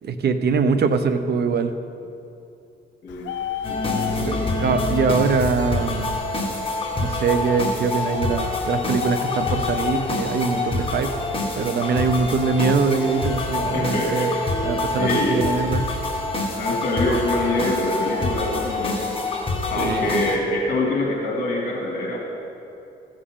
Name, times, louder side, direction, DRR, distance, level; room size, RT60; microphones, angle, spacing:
voice 1, 0.0-1.7 4.1-6.1 6.9-11.2 11.5-14.3 14.6-15.8 19.8-20.2, right 5 dB, 55° right, 9 dB, 0.8 m, -23 dB
Bird, 3.1-14.3, left 10 dB, 65° left, 0.5 m, -36 dB
sound 1, 3.6-20.4, left 2 dB, 25° left, 1.7 m, -26 dB
voice 2, 3.7-4.8 13.7-14.3 15.0-15.4 16.6-19.1 19.7-22.2, left 2 dB, 50° left, -3 dB, 2.5 m, -25 dB
15.0 x 8.7 x 3.8 m, 2.7 s
cardioid pair, 90°, 20 cm